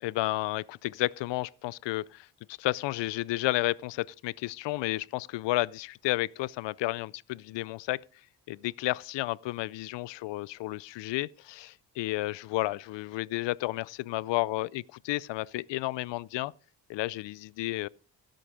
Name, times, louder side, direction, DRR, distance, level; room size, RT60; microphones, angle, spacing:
voice 1, 0.0-8.0 8.5-16.5 16.9-17.9, left 18 dB, 75° left, 0.6 m, -32 dB
16.5 x 7.8 x 5.0 m
supercardioid pair, 65°, 43 cm